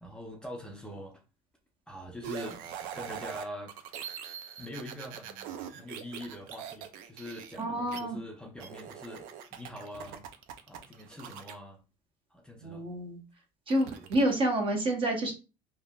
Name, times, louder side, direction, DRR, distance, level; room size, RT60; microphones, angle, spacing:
voice 1, 0.0-1.2 1.9-2.6 2.9-3.7 4.6-9.2 9.5-10.2 10.7-11.8 12.3-12.9 13.8-14.1, left 1 dB, 5° left, 0 dB, 0.5 m, -43 dB
sound 1, 2.2-8.0 8.6-11.5 13.7-14.3, right 9 dB, 70° right, 0.4 m, -42 dB
voice 2, 7.6-8.2 12.6-13.2 13.7-15.3, right 1 dB, 35° right, 3 dB, 0.9 m, -28 dB
3.3 x 2.2 x 2.3 m, 0.31 s
supercardioid pair, 100°, 15 cm